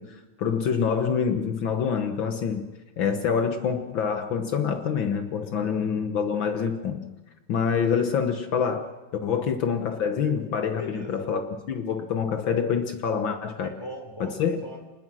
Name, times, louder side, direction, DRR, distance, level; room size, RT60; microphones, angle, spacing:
voice 1, 0.0-7.0 7.5-8.9 9.2-11.4 11.7-13.7 14.2-14.6, left 6 dB, 90° left, 7 dB, 1.0 m, -26 dB
voice 2, 10.8-11.3 13.6-14.8, left 1 dB, 10° left, 3 dB, 3.4 m, -41 dB
27.0 x 20.0 x 6.2 m, 1.1 s
omnidirectional pair, 3.9 m